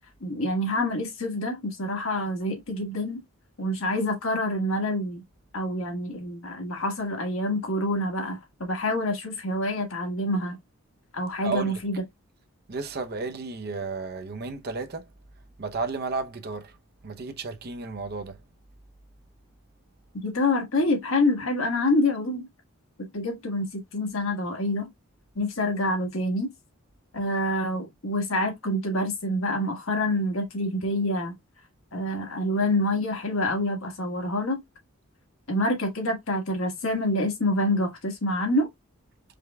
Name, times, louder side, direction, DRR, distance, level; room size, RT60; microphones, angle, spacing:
voice 1, 0.2-3.2 3.6-5.2 5.5-10.6 11.1-12.0 20.2-22.5 23.1-24.9 25.3-26.5 27.1-31.3 31.9-34.6 35.5-38.7, left 1 dB, 75° left, 1.6 m, -27 dB
voice 2, 11.4-11.8 12.7-15.1 15.6-16.8 17.0-18.4, right 4 dB, 45° right, 0.6 m, -33 dB
4.9 x 2.2 x 3.4 m
head